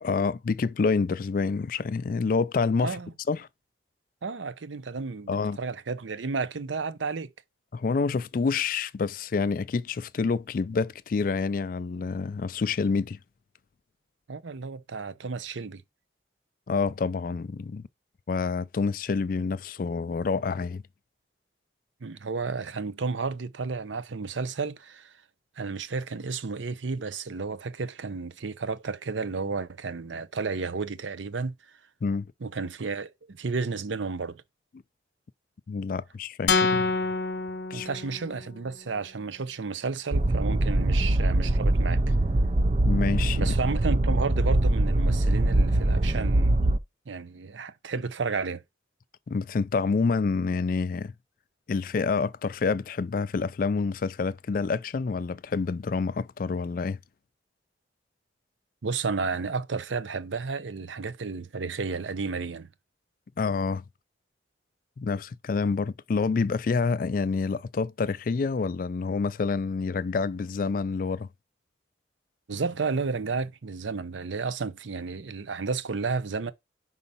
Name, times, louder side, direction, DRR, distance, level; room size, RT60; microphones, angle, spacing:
voice 1, 0.0-3.0 3.3-3.5 5.3-5.6 7.7-13.2 16.7-17.9 18.3-20.8 32.0-32.3 35.7-36.9 37.7-37.9 42.8-43.5 49.3-51.1 51.7-57.0 63.4-63.8 65.0-71.3, left 4 dB, 45° left, 0.3 m, -27 dB
voice 2, 2.8-3.1 4.2-7.3 14.3-15.8 22.0-25.1 25.6-31.5 32.4-34.4 37.7-42.1 43.4-46.7 47.1-48.6 58.8-62.7 72.5-76.5, right 4 dB, 85° right, 0.6 m, -32 dB
sound 1, 36.5-38.6, left 4 dB, 60° left, 0.9 m, -27 dB
sound 2, 40.1-46.8, right 1 dB, 30° right, 0.4 m, -23 dB
5.5 x 3.9 x 5.5 m
head